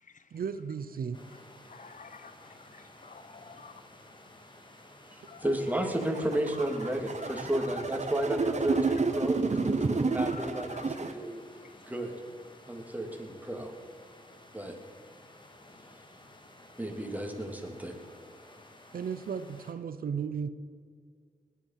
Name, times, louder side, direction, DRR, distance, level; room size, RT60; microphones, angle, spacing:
voice 1, 0.3-1.2 18.9-20.5, right 6 dB, 85° right, 12 dB, 0.7 m, -34 dB
sound 1, 1.1-19.7, left 1 dB, 35° left, 2.2 m, -54 dB
voice 2, 1.6-3.9 5.2-5.5 6.8-6.9 7.2-7.8 8.4-8.9 10.1-11.2 11.6-11.7, left 5 dB, 60° left, 11 dB, 1.0 m, -50 dB
voice 3, 5.1-11.4 11.9-12.1 12.7-13.7 14.5-14.7 16.8-18.0, right 1 dB, 10° right, 3 dB, 2.7 m, -33 dB
sound 2, 5.9-11.1, right 4 dB, 50° right, 1.1 m, -30 dB
18.0 x 11.0 x 5.8 m, 2.1 s
cardioid pair, 60°, 15 cm